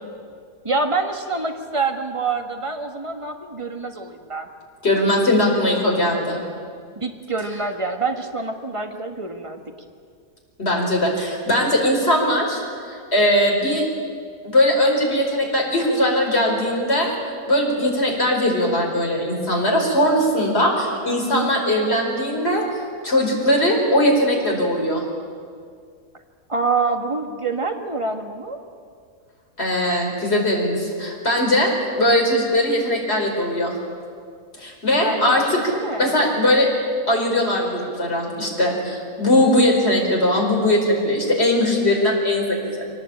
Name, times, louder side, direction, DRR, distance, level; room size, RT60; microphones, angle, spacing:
voice 1, 0.6-4.5 7.0-9.6 26.5-28.6 34.9-35.4 35.7-36.4, right 3 dB, 20° right, 4 dB, 1.7 m, -26 dB
voice 2, 4.8-6.4 10.6-12.6 12.9-13.9 14.4-17.1 17.5-22.6 23.0-25.0 29.6-33.8 34.6-35.7 36.0-36.7 37.1-42.9, left 1 dB, 45° left, -1 dB, 4.9 m, -20 dB
24.0 x 18.5 x 8.8 m, 2.2 s
omnidirectional pair, 1.5 m